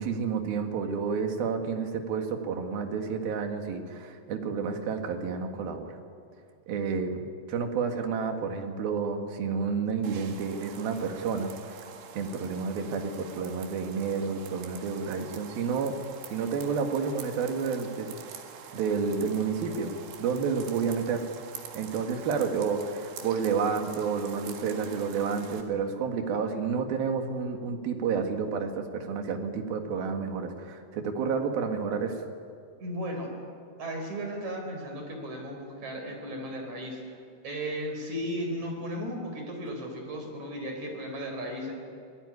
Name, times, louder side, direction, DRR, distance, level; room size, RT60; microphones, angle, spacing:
voice 1, 0.0-6.0 6.7-7.2 7.5-11.9 12.1-16.0 16.3-18.2 18.7-19.9 20.2-21.3 21.8-32.3, right 5 dB, 65° right, 4 dB, 3.5 m, -30 dB
sound 1, 10.0-25.6, right 7 dB, 80° right, 4.0 m, -46 dB
voice 2, 32.8-33.3 33.8-37.2 37.4-41.7, equal, 45° right, 2 dB, 5.5 m, -35 dB
25.5 x 19.5 x 9.8 m, 2.3 s
omnidirectional pair, 4.9 m